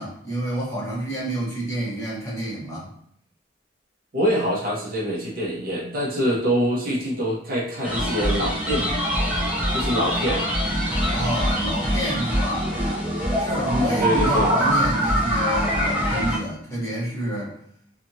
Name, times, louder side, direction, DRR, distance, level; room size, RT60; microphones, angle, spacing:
voice 1, 0.0-2.9 11.1-12.7 13.4-17.5, right 1 dB, 15° left, -7 dB, 1.1 m, -29 dB
voice 2, 4.1-9.0 9.7-10.4 13.7-14.5, equal, 50° right, -4 dB, 0.7 m, -25 dB
sound 1, 7.8-16.4, equal, 10° right, 0.6 m, -23 dB
2.7 x 2.4 x 2.6 m, 0.67 s
head